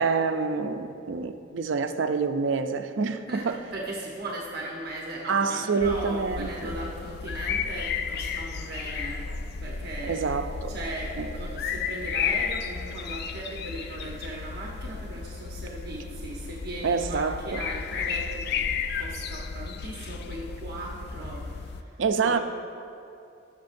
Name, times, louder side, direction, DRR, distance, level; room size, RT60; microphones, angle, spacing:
voice 1, 0.0-3.6 5.3-6.7 10.1-10.7 11.2-11.3 16.8-17.6 22.0-22.4, right 5 dB, 75° right, 0.5 m, -27 dB
voice 2, 3.3-9.2 9.6-10.2 10.7-22.4, right 1 dB, 55° right, 1.1 m, -38 dB
sound 1, 5.8-21.8, left 6 dB, 55° left, 0.4 m, -33 dB
19.0 x 6.5 x 2.6 m
head